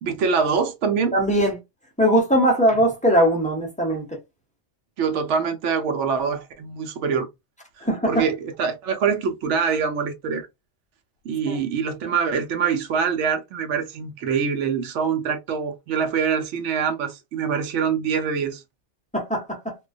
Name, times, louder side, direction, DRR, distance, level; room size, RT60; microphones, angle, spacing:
voice 1, 0.0-1.1 5.0-7.3 8.1-10.5 11.2-18.6, right 6 dB, 80° right, 0.9 m, -24 dB
voice 2, 1.1-1.6 2.0-4.1 7.8-8.3 11.5-11.6 19.1-19.7, equal, 10° left, 0.4 m, -20 dB
2.3 x 2.3 x 2.3 m
omnidirectional pair, 1.2 m